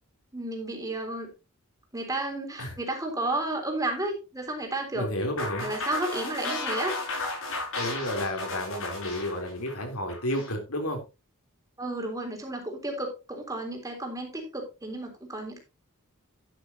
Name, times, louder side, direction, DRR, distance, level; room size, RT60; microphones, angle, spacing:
voice 1, 0.3-1.3 1.9-5.1 5.6-7.0 11.8-15.6, right 2 dB, 15° right, 2 dB, 3.6 m, -32 dB
voice 2, 4.9-5.7 7.7-11.0, left 1 dB, 85° left, 4 dB, 3.5 m, -31 dB
sound 1, 5.4-10.5, left 2 dB, 65° left, 6.1 m, -34 dB
11.0 x 11.0 x 2.9 m, 0.28 s
head